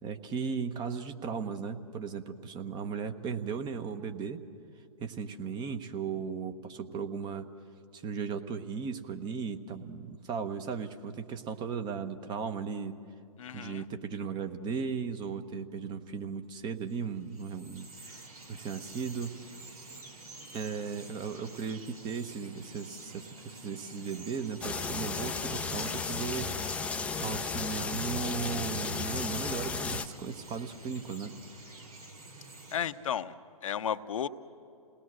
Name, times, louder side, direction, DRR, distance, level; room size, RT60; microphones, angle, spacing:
voice 1, 0.0-4.4 5.0-7.5 7.9-13.0 13.5-19.3 20.5-26.7 27.2-31.3, right 6 dB, 25° right, 8 dB, 1.1 m, -36 dB
voice 2, 13.4-13.9 32.7-33.3 33.6-34.3, left 8 dB, 65° left, 10 dB, 0.8 m, -33 dB
Bird vocalization bird call bird song, 16.8-32.9, right 2 dB, 80° right, 3.8 m, -49 dB
sound 1, 24.6-30.1, left 4 dB, 5° left, 0.6 m, -34 dB
28.5 x 19.0 x 6.3 m, 2.8 s
hypercardioid pair, 125°, 19 cm